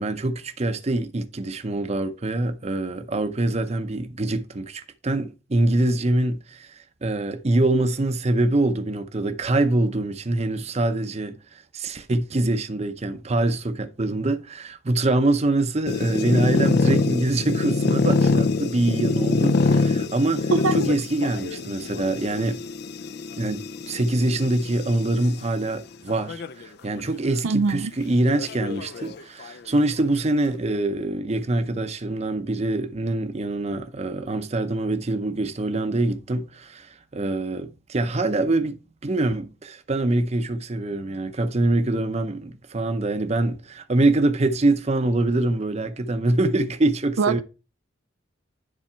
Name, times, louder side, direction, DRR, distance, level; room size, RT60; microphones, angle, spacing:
voice 1, 0.0-6.7 7.0-22.6 23.4-38.8 39.0-47.4, right 2 dB, 35° right, 0.7 m, -24 dB
sound 1, 15.9-25.3 26.1-26.6 27.0-27.1 27.4-27.5 28.4-29.5, left 3 dB, 55° left, 0.5 m, -25 dB
voice 2, 27.4-27.9 47.2-47.4, right 4 dB, 85° right, 0.5 m, -22 dB
9.9 x 4.1 x 4.5 m
head